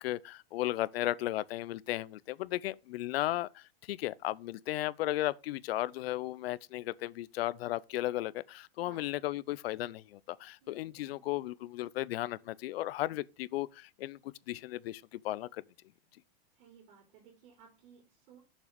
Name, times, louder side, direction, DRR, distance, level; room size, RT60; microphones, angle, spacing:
voice 1, 0.0-15.6, left 15 dB, 80° left, 0.6 m, -35 dB
voice 2, 10.6-11.3 16.5-18.4, right 6 dB, 60° right, 3.5 m, -59 dB
6.7 x 5.8 x 5.1 m
supercardioid pair, 150°, 30 cm